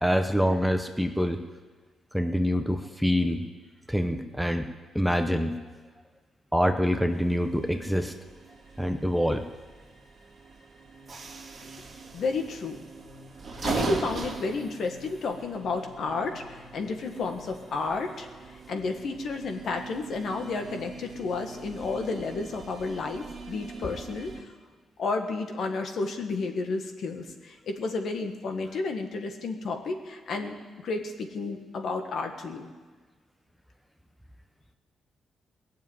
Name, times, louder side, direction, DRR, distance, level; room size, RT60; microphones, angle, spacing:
voice 1, 0.0-1.4 2.1-3.4 3.9-4.7 4.9-5.5 6.5-8.1 8.8-9.4, equal, ahead, 6 dB, 0.8 m, -25 dB
sound 1, 7.1-24.4, right 4 dB, 35° right, 2.5 m, -40 dB
voice 2, 12.1-12.8 13.6-18.3 18.7-24.3 25.0-32.7, left 3 dB, 60° left, 5 dB, 1.7 m, -31 dB
19.0 x 7.2 x 9.3 m, 1.4 s
cardioid pair, 125°, 0 cm